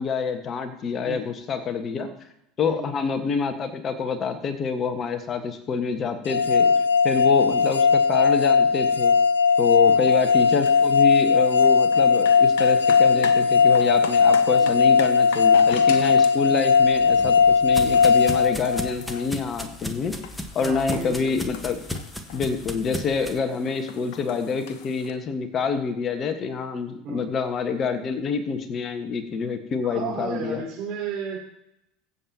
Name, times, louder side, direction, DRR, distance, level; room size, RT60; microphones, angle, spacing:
voice 1, 0.0-2.1 2.6-6.7 7.0-9.1 9.6-20.2 20.5-21.8 22.3-30.6, left 5 dB, 35° left, 8 dB, 1.5 m, -27 dB
voice 2, 2.6-2.9 6.6-6.9 7.5-7.7 9.9-10.0 13.1-13.4 14.6-14.7 16.5-16.6 20.6-21.5 27.0-27.2 29.8-31.4, right 6 dB, 45° right, -6 dB, 4.0 m, -34 dB
sound 1, 6.3-19.2, left 5 dB, 80° left, 0.5 m, -18 dB
sound 2, 10.1-25.1, left 8 dB, 60° left, 1.0 m, -41 dB
sound 3, 16.8-23.4, left 1 dB, 5° left, 1.3 m, -36 dB
23.5 x 7.8 x 2.9 m, 0.81 s
figure-of-eight pair, 75°, 0 cm